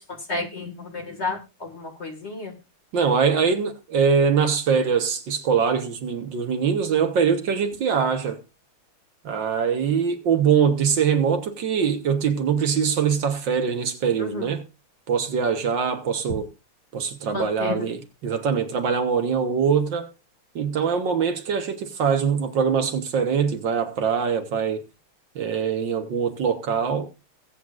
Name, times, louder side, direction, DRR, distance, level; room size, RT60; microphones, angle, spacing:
voice 1, 0.3-2.5 14.2-14.4 17.3-17.8, left 3 dB, 30° left, 2.0 m, -31 dB
voice 2, 2.9-8.4 9.2-14.6 15.1-16.5 16.9-20.1 20.5-24.8 25.3-27.1, right 6 dB, 60° right, 1.8 m, -23 dB
22.0 x 8.0 x 2.5 m
omnidirectional pair, 2.4 m